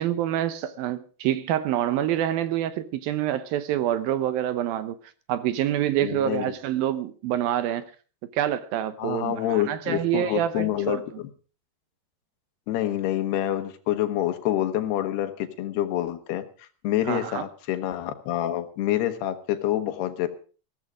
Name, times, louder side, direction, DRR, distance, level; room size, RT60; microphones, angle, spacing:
voice 1, 0.0-5.0 5.3-7.8 8.3-11.0 17.1-17.4, right 11 dB, 75° right, 2.6 m, -26 dB
voice 2, 6.0-6.5 9.0-11.3 12.7-20.3, left 12 dB, 80° left, 3.4 m, -27 dB
16.0 x 14.5 x 5.1 m
omnidirectional pair, 4.6 m